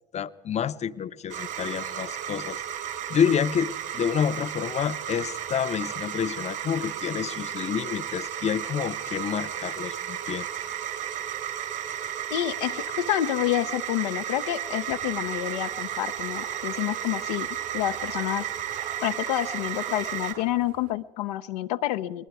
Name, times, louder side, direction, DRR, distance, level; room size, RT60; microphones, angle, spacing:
voice 1, 0.1-2.6 3.1-10.5, left 8 dB, 35° left, 13 dB, 0.8 m, -28 dB
sound 1, 1.3-20.3, right 10 dB, 60° right, 3.0 m, -33 dB
voice 2, 12.3-17.5 17.7-18.5 19.0-22.3, left 14 dB, 70° left, 8 dB, 0.6 m, -28 dB
sound 2, 14.9-20.9, right 7 dB, 75° right, 5.2 m, -48 dB
29.5 x 20.5 x 4.8 m, 1.1 s
hypercardioid pair, 65°, 21 cm